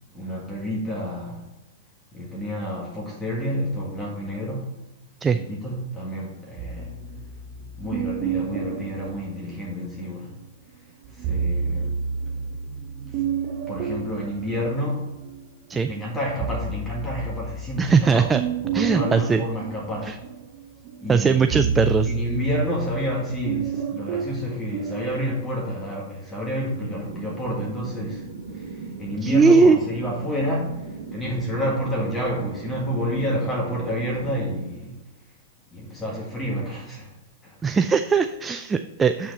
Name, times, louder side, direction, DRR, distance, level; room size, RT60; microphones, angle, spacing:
voice 1, 0.1-1.4 2.1-4.8 5.3-6.9 7.8-10.4 10.8-12.0 13.1-13.2 13.7-15.2 15.7-18.3 18.6-20.2 21.0-21.7 22.1-28.3 28.5-35.0 35.7-37.1 37.4-37.6, equal, 15° left, -3 dB, 1.7 m, -29 dB
sound 1, 6.6-10.1 11.0-15.5 15.9-25.2, right 5 dB, 50° right, 0.9 m, -30 dB
voice 2, 17.8-18.4 18.7-19.4 20.0-20.2 21.1-22.1 29.2-29.8 37.6-39.3, right 5 dB, 15° right, 8 dB, 0.3 m, -19 dB
sound 2, 26.7-34.7, right 4 dB, 65° right, 1.3 m, -38 dB
7.5 x 4.3 x 4.0 m, 1.0 s
hypercardioid pair, 110°, 0 cm